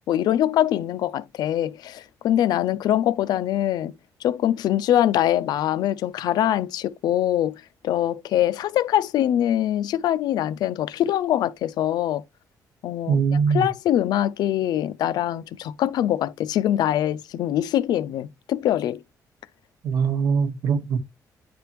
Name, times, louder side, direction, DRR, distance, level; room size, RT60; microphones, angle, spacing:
voice 1, 0.1-3.9 4.2-7.6 7.8-12.2 12.8-13.2 13.5-19.0, left 11 dB, 80° left, 0.4 m, -23 dB
voice 2, 13.1-13.7 19.8-21.0, right 6 dB, 65° right, 1.1 m, -22 dB
10.0 x 3.4 x 3.0 m
cardioid pair, 155°, 7 cm